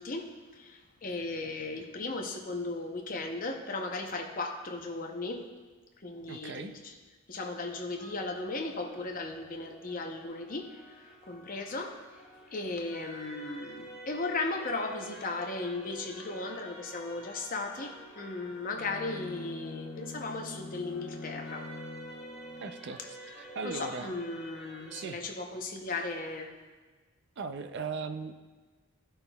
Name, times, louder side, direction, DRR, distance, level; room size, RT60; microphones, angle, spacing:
voice 1, 0.0-5.5 6.0-6.9 7.3-12.0 12.5-21.7 23.4-26.5, left 3 dB, 40° left, 3 dB, 0.7 m, -36 dB
voice 2, 6.3-6.7 22.6-23.0 23.4-24.1 24.9-25.2 27.4-28.3, right 4 dB, 50° right, 9 dB, 0.4 m, -38 dB
sound 1, 8.0-25.1, right 1 dB, 5° right, 1.1 m, -50 dB
Bowed string instrument, 18.7-22.9, left 3 dB, 65° left, 1.0 m, -44 dB
14.0 x 5.7 x 2.3 m, 1.3 s
head